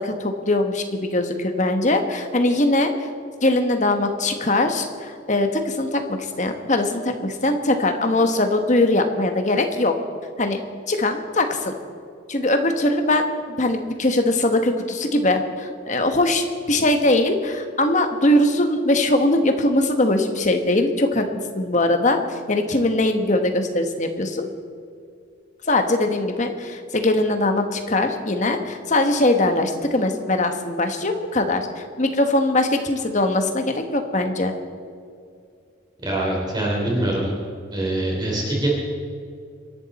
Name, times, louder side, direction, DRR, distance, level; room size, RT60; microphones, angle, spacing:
voice 1, 0.0-3.1 3.4-9.9 10.4-10.6 10.9-11.7 12.3-13.2 13.6-21.3 21.5-24.5 25.7-34.5, left 2 dB, 40° left, 6 dB, 1.4 m, -21 dB
voice 2, 36.0-37.3 37.7-38.7, right 1 dB, 20° right, -3 dB, 3.5 m, -24 dB
27.0 x 11.0 x 4.3 m, 2.3 s
head